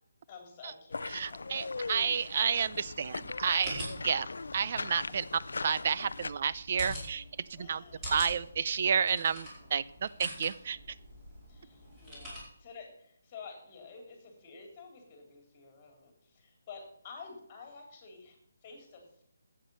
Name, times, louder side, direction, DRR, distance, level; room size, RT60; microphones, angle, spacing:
voice 1, 0.3-2.0 7.6-8.1 9.6-10.0 10.5-10.6 11.5-19.2, left 5 dB, 20° left, 3 dB, 3.3 m, -51 dB
sound 1, 0.9-6.3, left 3 dB, 80° left, 0.5 m, -40 dB
voice 2, 1.1-4.3 4.5-5.2 5.6-7.2 7.5-7.8 8.1-11.0, right 7 dB, 35° right, 17 dB, 0.5 m, -31 dB
sound 2, 2.6-12.4, equal, 10° right, 4.7 m, -45 dB
12.0 x 8.6 x 5.4 m, 0.72 s
hypercardioid pair, 170°, 0 cm